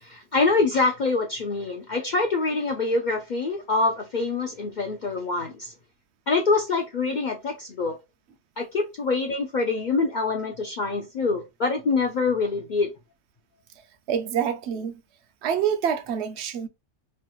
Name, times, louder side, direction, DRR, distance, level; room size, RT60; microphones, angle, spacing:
voice 1, 0.0-5.7 6.3-8.0 8.6-12.9, left 3 dB, 60° left, 0.4 m, -25 dB
voice 2, 14.1-14.9 15.4-16.7, right 8 dB, 65° right, 0.8 m, -26 dB
3.1 x 2.3 x 3.0 m
omnidirectional pair, 1.3 m